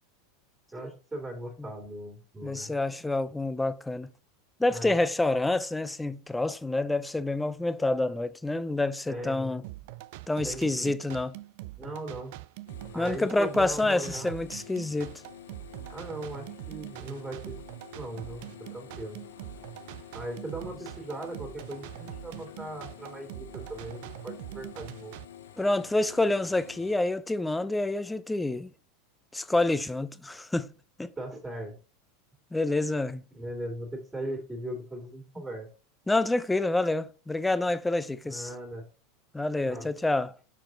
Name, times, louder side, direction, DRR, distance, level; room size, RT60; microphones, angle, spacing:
voice 1, 0.7-2.8 4.7-5.0 9.1-9.6 10.4-11.0 11.7-12.4 12.9-14.4 15.9-17.6 17.9-19.2 20.1-25.2 31.2-31.8 33.3-35.7 38.2-38.9 39.6-39.9, right 1 dB, 10° right, 2.4 m, -39 dB
voice 2, 2.4-4.1 4.6-9.6 10.3-11.3 12.9-15.1 25.6-28.7 29.3-30.7 31.0-31.1 32.5-33.2 36.1-38.5 39.3-40.3, left 2 dB, 10° left, 0.5 m, -28 dB
sound 1, 9.6-25.2, right 17 dB, 65° right, 0.4 m, -43 dB
sound 2, 12.7-27.0, left 9 dB, 80° left, 0.7 m, -49 dB
5.9 x 4.7 x 3.8 m
hypercardioid pair, 90°, 0 cm